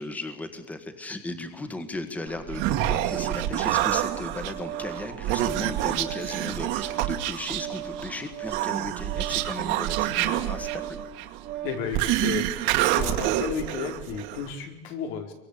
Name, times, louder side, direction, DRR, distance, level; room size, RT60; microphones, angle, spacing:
voice 1, 0.0-11.0, left 2 dB, 5° left, 8 dB, 1.7 m, -36 dB
Human voice, 2.3-14.5, right 13 dB, 65° right, 2.1 m, -28 dB
Organ, 2.5-11.9, right 10 dB, 50° right, 1.8 m, -38 dB
voice 2, 11.6-12.5 12.9-15.3, left 7 dB, 90° left, 4 dB, 4.8 m, -33 dB
28.5 x 24.0 x 8.4 m, 0.95 s
cardioid pair, 180°, 21 cm